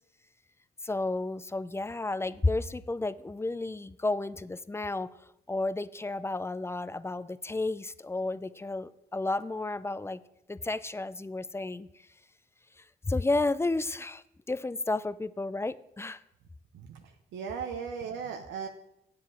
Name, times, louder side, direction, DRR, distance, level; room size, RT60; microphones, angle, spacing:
voice 1, 0.8-5.1 5.5-10.2 10.5-11.9 12.8-16.2, left 2 dB, 15° left, 16 dB, 0.4 m, -32 dB
voice 2, 16.7-18.7, right 6 dB, 85° right, 4 dB, 0.7 m, -37 dB
8.3 x 7.6 x 4.8 m, 0.84 s
supercardioid pair, 60°, 19 cm